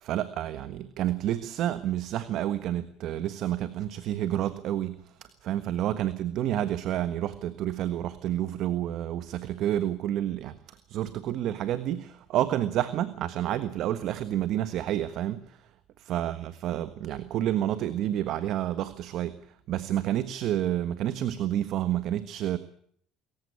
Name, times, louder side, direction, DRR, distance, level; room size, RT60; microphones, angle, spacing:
voice 1, 0.0-15.7 16.0-19.4 19.7-22.6, right 12 dB, 60° right, 12 dB, 1.4 m, -29 dB
25.0 x 15.0 x 8.7 m, 0.63 s
supercardioid pair, 105°, 0 cm